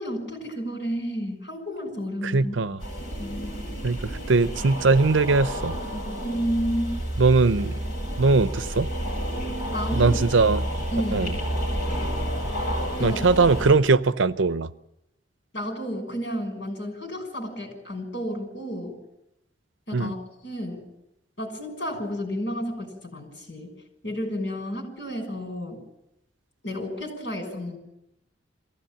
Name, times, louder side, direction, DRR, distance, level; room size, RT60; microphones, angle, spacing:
voice 1, 0.0-2.6 3.2-3.7 6.2-7.0 7.6-7.7 9.7-10.2 10.9-11.4 13.0-13.2 15.5-19.0 19.9-20.2 20.4-20.8 21.4-23.7 24.0-25.8 26.6-27.8, equal, 70° left, 6.1 m, -31 dB
voice 2, 2.2-2.8 3.8-5.7 7.2-7.7 8.2-8.9 9.9-10.6 11.1-11.3 13.0-14.7 19.9-20.1, right 3 dB, 85° right, 0.7 m, -20 dB
sound 1, 2.8-13.7, equal, 50° left, 7.7 m, -30 dB
22.5 x 16.0 x 8.9 m
head